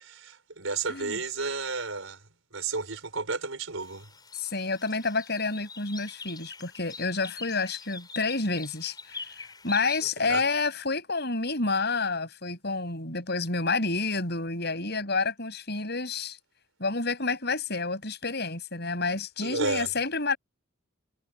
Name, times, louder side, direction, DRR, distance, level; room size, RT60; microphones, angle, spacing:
voice 1, 0.1-2.2 2.5-4.1 10.2-10.4 19.4-19.9, right 4 dB, 70° right, 4.8 m, -32 dB
sound 1, 3.8-10.0, left 4 dB, 20° left, 6.8 m, -44 dB
voice 2, 4.3-16.4 16.8-20.4, left 3 dB, 50° left, 7.9 m, -29 dB
head